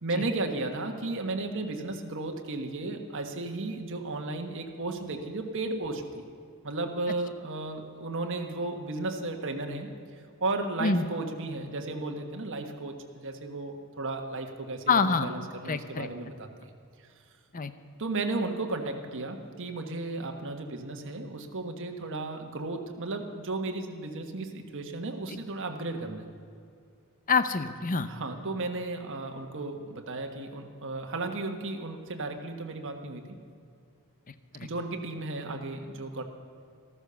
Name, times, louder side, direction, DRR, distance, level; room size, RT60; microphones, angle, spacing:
voice 1, 0.0-6.0 6.6-9.9 10.4-16.5 18.0-26.2 28.1-33.2 34.6-36.2, right 2 dB, 60° right, 4 dB, 1.4 m, -34 dB
voice 2, 14.9-15.3 15.6-16.1 17.5-17.7 25.3-25.4 27.3-28.1 34.3-34.7, left 4 dB, 40° left, 11 dB, 0.7 m, -27 dB
14.0 x 13.5 x 6.9 m, 2.3 s
head